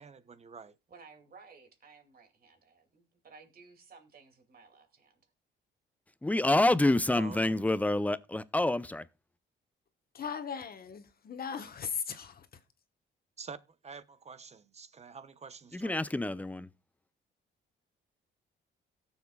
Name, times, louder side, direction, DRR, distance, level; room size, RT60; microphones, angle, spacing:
voice 1, 0.0-0.7 7.1-7.6 13.4-16.1, right 5 dB, 35° right, 0.9 m, -47 dB
voice 2, 0.9-5.2, right 4 dB, 50° right, 2.5 m, -56 dB
voice 3, 6.2-9.1 15.7-16.7, left 2 dB, 5° left, 0.5 m, -27 dB
voice 4, 10.1-12.5, left 7 dB, 50° left, 1.3 m, -38 dB
17.5 x 7.1 x 2.3 m
cardioid pair, 90°, 20 cm